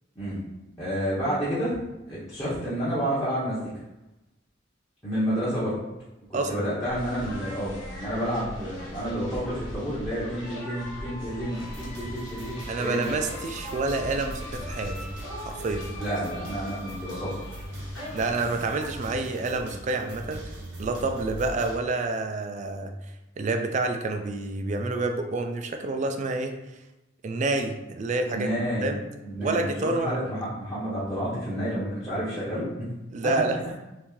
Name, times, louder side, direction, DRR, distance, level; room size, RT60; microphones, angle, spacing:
voice 1, 0.8-1.8 2.1-3.7 5.0-5.8 6.3-13.1 16.0-17.6 28.3-28.9 29.2-32.9 33.3-33.4, equal, 15° left, -11 dB, 0.9 m, -30 dB
sound 1, 6.9-19.1, equal, 70° left, 1.1 m, -40 dB
sound 2, 10.4-18.3, left 1 dB, 45° left, 1.0 m, -45 dB
sound 3, 11.7-21.8, right 1 dB, 70° right, 1.1 m, -41 dB
voice 2, 12.7-15.0 15.4-15.9 18.1-20.4 20.8-22.9 23.4-26.5 27.2-28.5 28.8-29.0 29.4-30.2 33.1-33.6, right 3 dB, 40° right, 5 dB, 0.3 m, -28 dB
2.9 x 2.7 x 3.5 m, 0.98 s
head